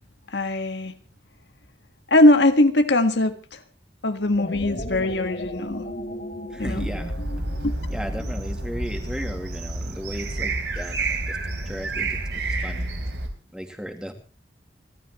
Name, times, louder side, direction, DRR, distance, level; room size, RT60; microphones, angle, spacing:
voice 1, 0.3-0.9 2.1-3.6 4.0-5.8 6.6-6.9 7.6-7.7, left 1 dB, 80° left, 1.7 m, -20 dB
sound 1, 4.2-8.8, left 1 dB, 60° left, 3.8 m, -36 dB
voice 2, 6.5-7.1 7.9-11.4 11.6-12.2 12.6-12.8 13.5-14.1, equal, 5° right, 2.2 m, -35 dB
sound 2, 6.6-13.3, right 2 dB, 75° right, 3.7 m, -29 dB
29.0 x 13.0 x 3.1 m
head